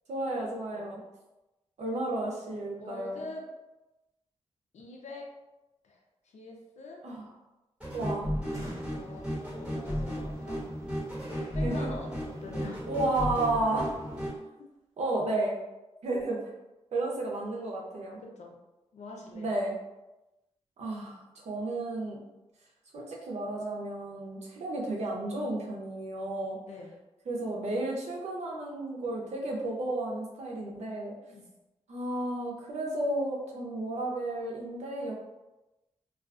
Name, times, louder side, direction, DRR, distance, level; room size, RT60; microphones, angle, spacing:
voice 1, 0.1-1.0 1.8-3.2 7.0-7.3 7.9-8.3 11.6-11.9 12.9-13.9 15.0-15.6 16.0-16.4 16.9-18.2 19.3-19.8 20.8-22.2 22.9-26.6 27.3-31.1 31.9-35.1, right 2 dB, 80° right, -2 dB, 0.6 m, -32 dB
voice 2, 2.5-3.5 4.7-5.3 5.8-7.0 8.8-9.3 9.6-10.7 11.3-12.9 18.2-18.6 18.9-19.5 26.7-27.0 31.3-31.5, left 2 dB, 85° left, 0 dB, 0.5 m, -44 dB
sound 1, 7.8-14.4, equal, 10° right, 1.1 m, -34 dB
sound 2, 8.5-14.3, equal, 30° right, 0.8 m, -48 dB
2.3 x 2.3 x 2.4 m, 1.0 s
cardioid pair, 80°, 11 cm